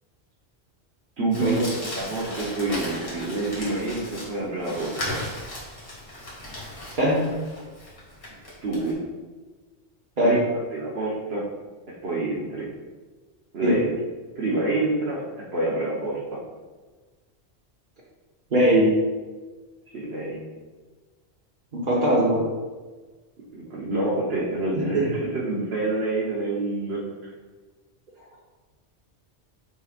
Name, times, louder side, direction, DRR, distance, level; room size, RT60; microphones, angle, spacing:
voice 1, 1.2-5.2 8.6-9.0 10.2-10.4 10.7-11.4 12.0-12.7 13.5-13.9 14.4-15.2 15.5-16.4 19.9-20.4 23.5-27.0, right 2 dB, 70° right, -6 dB, 1.3 m, -27 dB
Crumpling crinkling, 1.3-8.9, left 1 dB, 55° left, 2.0 m, -36 dB
voice 2, 7.0-7.3 10.2-10.4 13.6-13.8 18.5-18.9 21.7-22.4 24.8-25.1, equal, 45° right, -6 dB, 1.2 m, -20 dB
7.0 x 5.5 x 2.5 m, 1.3 s
omnidirectional pair, 1.1 m